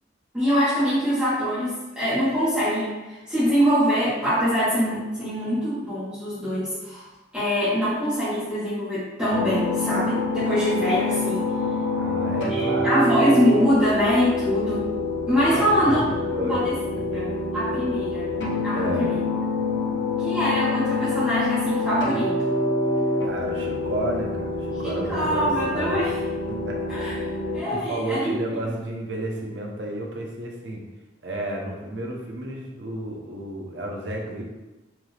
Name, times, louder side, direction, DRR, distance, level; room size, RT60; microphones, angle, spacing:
voice 1, 0.3-7.1 7.3-11.4 12.5-14.8 15.3-16.0 16.5-16.8 17.1-18.3 18.6-19.2 20.2-22.6 24.8-26.1 26.9-28.4, equal, 5° right, -14 dB, 1.3 m, -24 dB
sound 1, 9.3-27.6, left 2 dB, 75° left, 0.7 m, -26 dB
voice 2, 11.9-13.2 15.5-16.7 17.1-17.4 18.7-19.2 23.2-26.0 26.5-26.9 27.7-30.8 31.2-34.4, right 1 dB, 70° right, -1 dB, 0.9 m, -31 dB
4.6 x 2.8 x 3.3 m, 1.1 s
head